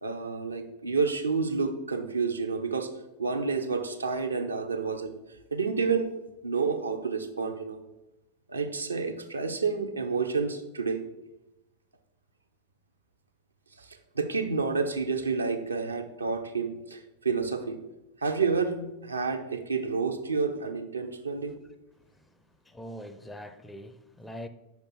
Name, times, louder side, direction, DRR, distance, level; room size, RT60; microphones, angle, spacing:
voice 1, 0.0-2.9 3.2-5.1 5.5-6.1 6.4-7.8 8.5-11.1 13.8-17.8 18.2-21.5, right 5 dB, 80° right, 0.6 m, -29 dB
voice 2, 22.0-24.5, equal, 10° left, 0.5 m, -44 dB
5.7 x 5.1 x 4.5 m
figure-of-eight pair, 90°, 0 cm